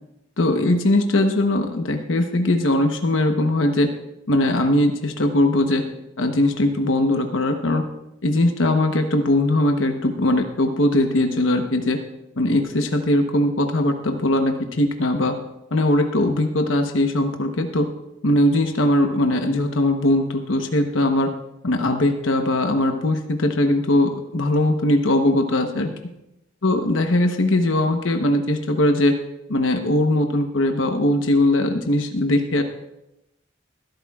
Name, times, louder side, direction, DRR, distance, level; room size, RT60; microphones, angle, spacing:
voice 1, 0.4-3.9 4.3-5.8 6.2-7.8 8.2-12.0 12.4-15.3 15.7-17.9 18.2-21.3 21.6-25.9 26.6-29.2 29.5-32.6, left 1 dB, 80° left, 5 dB, 1.0 m, -20 dB
21.0 x 11.5 x 2.4 m, 0.90 s
head